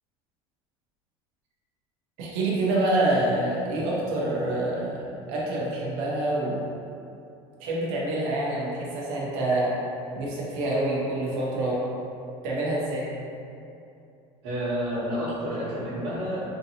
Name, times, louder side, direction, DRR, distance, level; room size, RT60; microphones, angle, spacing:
voice 1, 2.2-6.6 7.6-9.7 10.1-11.8 12.4-13.1, right 1 dB, 60° right, -5 dB, 0.8 m, -26 dB
voice 2, 14.4-16.4, equal, 85° right, -13 dB, 1.2 m, -29 dB
3.6 x 2.7 x 2.8 m, 2.6 s
cardioid pair, 180°, 13 cm